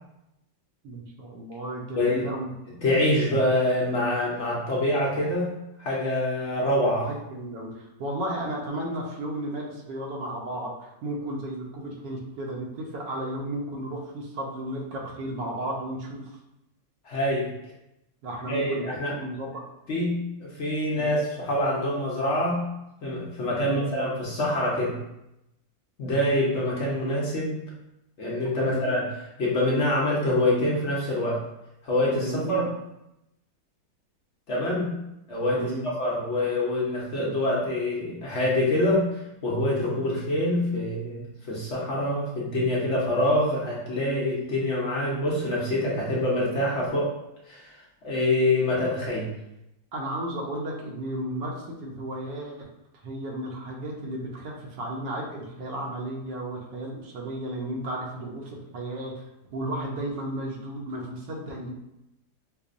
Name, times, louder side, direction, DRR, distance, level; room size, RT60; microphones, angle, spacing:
voice 1, 0.8-2.5 7.1-16.3 18.2-19.6 21.0-21.2 23.5-24.0 28.6-28.9 32.2-32.7 35.5-35.9 49.9-52.7 53.0-59.1 59.5-61.7, right 1 dB, 75° right, -1 dB, 1.3 m, -34 dB
voice 2, 2.0-2.3 2.8-5.5 5.8-7.1 17.0-17.5 18.5-19.1 19.9-22.7 23.0-25.0 26.0-27.6 28.2-29.1 29.4-31.4 31.8-32.6 34.5-35.0 35.3-47.1 47.5-47.7 48.0-49.3, left 1 dB, 60° left, -5 dB, 0.7 m, -25 dB
5.4 x 2.0 x 2.5 m, 0.87 s
omnidirectional pair, 1.9 m